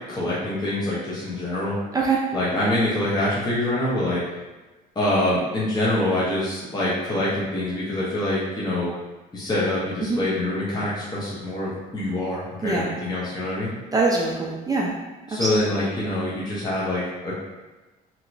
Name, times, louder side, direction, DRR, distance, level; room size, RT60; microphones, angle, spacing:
voice 1, 0.1-1.8 2.3-4.2 5.0-8.9 9.3-13.7 15.3-17.4, left 1 dB, 25° left, -8 dB, 0.8 m, -25 dB
voice 2, 12.6-12.9 13.9-14.9 15.3-15.5, right 3 dB, 20° right, -3 dB, 0.4 m, -23 dB
2.9 x 2.8 x 2.5 m, 1.2 s
cardioid pair, 110°, 17 cm